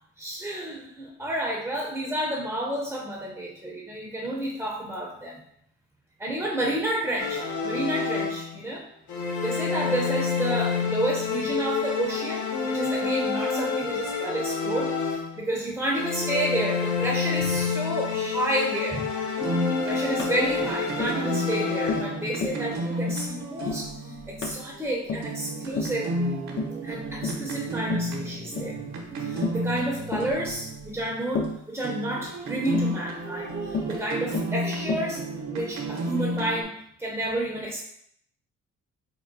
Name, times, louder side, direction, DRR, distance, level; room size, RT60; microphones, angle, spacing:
voice 1, 0.2-5.4 6.2-8.8 9.4-19.2 19.8-26.1 26.8-28.8 29.2-35.2 35.5-37.8, right 1 dB, 5° right, -2 dB, 0.6 m, -30 dB
sound 1, 7.2-8.7 9.1-15.5 15.9-22.4, left 5 dB, 70° left, 0.7 m, -28 dB
sound 2, 19.4-31.5 31.8-36.6, right 1 dB, 65° right, 0.7 m, -32 dB
Tap, 20.2-20.4 21.0-21.2 21.9-22.1 22.4-22.6 23.1-23.3 23.7-23.9 24.4-24.6 25.1-25.3 25.8-26.0 26.6-26.8 27.2-27.5 27.9-28.1 28.6-28.7 29.4-29.7 30.1-30.3 31.3-31.6 32.7-32.9 33.7-34.0 34.3-34.6 34.9-35.1, left 3 dB, 40° left, 0.5 m, -31 dB
4.4 x 2.2 x 2.6 m, 0.71 s
cardioid pair, 90°, 30 cm